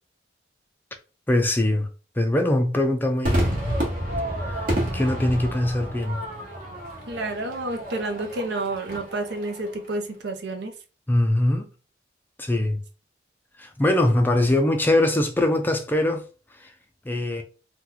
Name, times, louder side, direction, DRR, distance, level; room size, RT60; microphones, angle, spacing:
voice 1, 1.3-1.9 2.2-3.5 4.4-4.7 4.9-6.2 11.1-11.6 12.4-12.8 13.6-16.2 16.6-16.7 17.1-17.4, left 1 dB, 10° left, 0.4 m, -22 dB
Crowd / Fireworks, 3.2-9.8, equal, 50° right, 1.1 m, -29 dB
voice 2, 7.1-10.7, right 2 dB, 70° right, 0.6 m, -30 dB
2.9 x 2.2 x 3.7 m
head